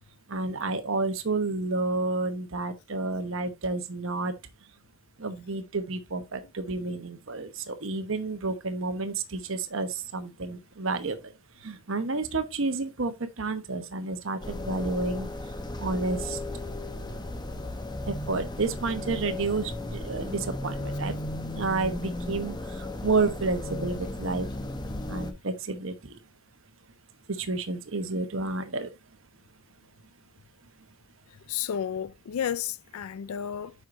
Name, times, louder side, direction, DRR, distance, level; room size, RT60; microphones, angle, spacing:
voice 1, 0.3-4.3 5.2-11.3 11.6-16.4 18.1-21.2 21.5-24.5 25.1-26.2 27.3-28.9, right 3 dB, 60° right, 1.0 m, -30 dB
sound 1, 14.4-25.3, left 1 dB, 20° left, 0.8 m, -35 dB
voice 2, 31.5-33.7, left 9 dB, 80° left, 0.4 m, -32 dB
7.8 x 5.6 x 2.6 m
head